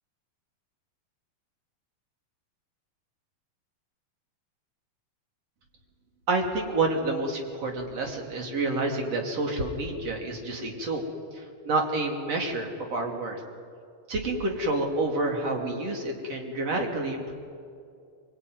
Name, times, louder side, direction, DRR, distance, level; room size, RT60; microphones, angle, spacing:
voice 1, 6.3-11.1 11.3-13.4 14.1-17.3, right 2 dB, 40° right, 1 dB, 3.6 m, -29 dB
23.0 x 22.5 x 9.5 m, 2.3 s
omnidirectional pair, 4.6 m